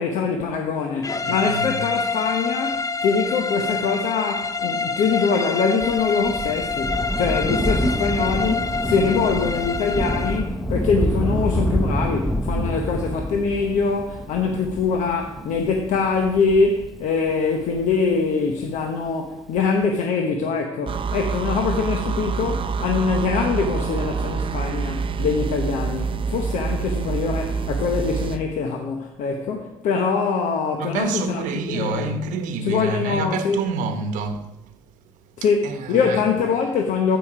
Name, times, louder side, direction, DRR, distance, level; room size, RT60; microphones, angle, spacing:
voice 1, 0.0-32.1 32.6-33.6 35.4-37.2, left 5 dB, 75° left, 1.0 m, -23 dB
sound 1, 1.0-10.5, left 4 dB, 25° left, 0.6 m, -27 dB
voice 2, 1.2-1.7 30.8-34.5 35.4-36.2, right 4 dB, 80° right, 0.9 m, -28 dB
Thunder, 5.8-18.7 19.6-19.7, equal, ahead, 1.0 m, -27 dB
sound 2, 20.9-28.4, right 5 dB, 40° right, 0.6 m, -26 dB
14.5 x 5.2 x 5.0 m
supercardioid pair, 60°, 13 cm